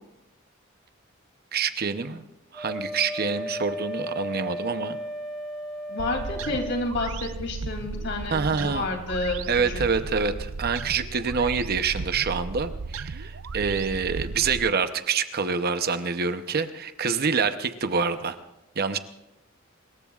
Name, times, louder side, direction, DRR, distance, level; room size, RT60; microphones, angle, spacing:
voice 1, 1.5-2.2 2.5-5.0 8.3-8.8 9.5-18.4 18.8-19.0, right 5 dB, 50° right, 10 dB, 0.8 m, -26 dB
Wind instrument woodwind instrument, 2.5-6.8, equal, ahead, 5.6 m, -34 dB
voice 2, 5.9-9.4 9.7-9.9, left 2 dB, 60° left, 3 dB, 2.8 m, -30 dB
sound 1, 6.0-14.7, right 4 dB, 85° right, 0.6 m, -35 dB
25.0 x 21.0 x 2.4 m, 0.93 s
head